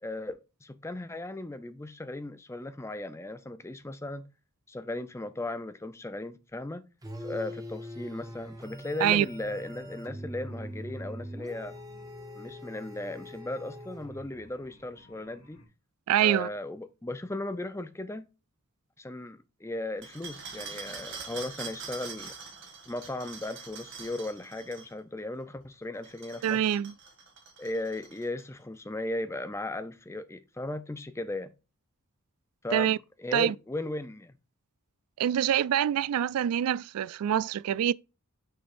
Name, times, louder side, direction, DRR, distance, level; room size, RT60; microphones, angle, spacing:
voice 1, 0.0-4.3 4.7-6.8 7.2-11.8 12.4-15.6 16.2-18.3 19.0-22.4 22.9-26.6 27.6-31.5 32.6-34.3, left 2 dB, 10° left, 0.5 m, -37 dB
sound 1, 7.0-14.5, equal, 15° right, 0.9 m, -42 dB
sound 2, 8.2-15.7, left 1 dB, 65° left, 2.4 m, -57 dB
voice 2, 16.1-16.5 26.4-26.9 32.7-33.0 33.3-33.5 35.2-37.9, right 10 dB, 80° right, 0.3 m, -25 dB
sound 3, 20.0-24.9 25.9-28.4, right 5 dB, 55° right, 2.3 m, -44 dB
6.5 x 6.1 x 2.5 m
head